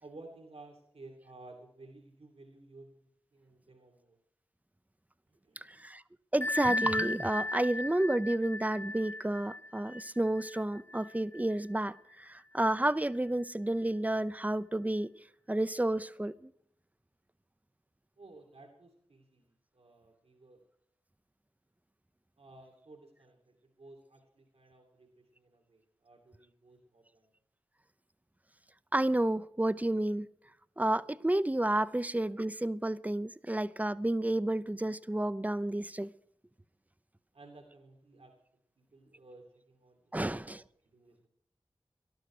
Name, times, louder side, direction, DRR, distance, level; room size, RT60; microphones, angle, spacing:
voice 1, 0.0-4.2 5.3-5.9 18.2-20.6 22.4-27.3 37.3-38.3 38.8-40.6 40.9-41.3, right 2 dB, 75° right, 2.7 m, -55 dB
voice 2, 5.6-6.0 6.3-15.1 15.5-16.5 28.9-30.3 30.8-36.1 40.1-40.6, right 1 dB, 15° right, 0.7 m, -31 dB
Bell, 6.4-11.8, left 2 dB, 25° left, 0.8 m, -37 dB
19.0 x 12.0 x 4.9 m
cardioid pair, 45°, 10 cm